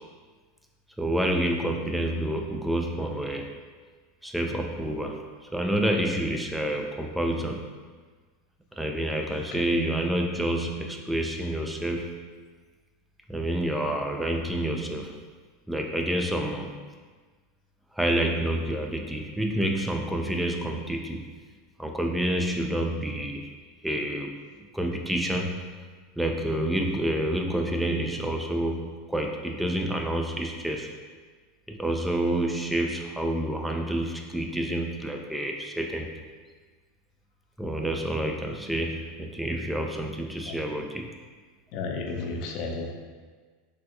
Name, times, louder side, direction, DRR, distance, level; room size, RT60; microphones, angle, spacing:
voice 1, 1.0-3.5 4.2-5.2 5.5-7.7 8.7-12.3 13.3-15.2 15.7-16.7 17.9-21.3 21.8-23.5 23.8-24.4 24.7-25.7 26.2-30.9 31.7-36.1 37.6-41.1, right 1 dB, 5° right, 2 dB, 0.3 m, -28 dB
voice 2, 9.3-9.6 40.5-40.6 41.7-42.9, left 3 dB, 55° left, 2 dB, 0.5 m, -33 dB
3.8 x 2.4 x 2.6 m, 1.5 s
hypercardioid pair, 90°, 0 cm